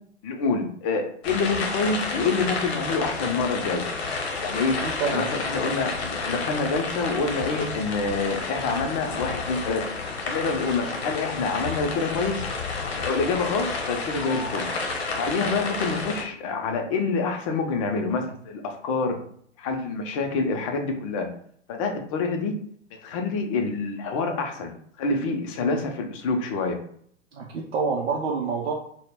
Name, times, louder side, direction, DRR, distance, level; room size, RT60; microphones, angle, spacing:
voice 1, 0.2-3.9 4.4-4.8 5.0-9.8 10.3-12.5 12.9-14.6 15.2-19.2 19.6-21.3 21.7-22.5 22.9-26.8, left 4 dB, 30° left, 4 dB, 0.4 m, -27 dB
sound 1, 1.2-16.2, left 4 dB, 60° left, 0.8 m, -30 dB
voice 2, 4.8-5.3 15.3-15.4 27.3-28.7, right 5 dB, 60° right, -1 dB, 0.5 m, -27 dB
2.1 x 2.1 x 3.4 m, 0.62 s
figure-of-eight pair, 110°, 36 cm